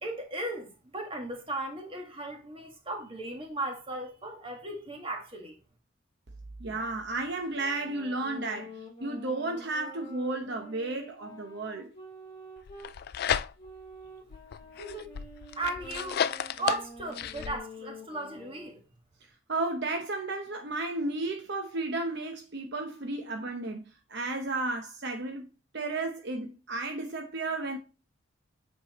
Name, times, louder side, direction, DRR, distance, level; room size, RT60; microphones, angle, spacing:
voice 1, 0.0-5.6 14.8-15.1 15.6-16.2 16.6-18.8, right 2 dB, 25° right, 1.7 m, -36 dB
voice 2, 6.6-11.9 19.5-23.8 24.1-25.5 25.7-27.8, right 2 dB, 55° right, 0.9 m, -33 dB
sound 1, 7.4-12.9 13.6-18.8, left 1 dB, 25° left, 2.2 m, -48 dB
sound 2, 12.7-13.9 14.3-17.6, left 8 dB, 50° left, 0.4 m, -33 dB
8.4 x 4.7 x 3.0 m
head